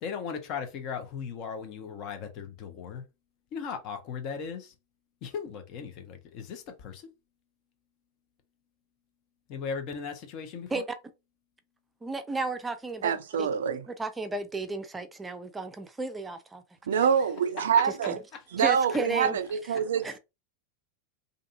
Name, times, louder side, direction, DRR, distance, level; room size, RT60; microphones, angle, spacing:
voice 1, 0.0-3.0 3.5-4.7 5.2-7.1 9.5-10.9 16.9-17.3 17.8-17.9 18.3-18.7, left 6 dB, 45° left, 0.8 m, -37 dB
voice 2, 12.0-16.6 18.1-18.2 18.6-19.4 20.0-20.2, right 3 dB, 15° right, 0.5 m, -33 dB
voice 3, 13.0-13.8 16.9-18.2 18.5-20.2, right 7 dB, 70° right, 0.3 m, -26 dB
2.6 x 2.5 x 2.5 m
figure-of-eight pair, 90°, 0 cm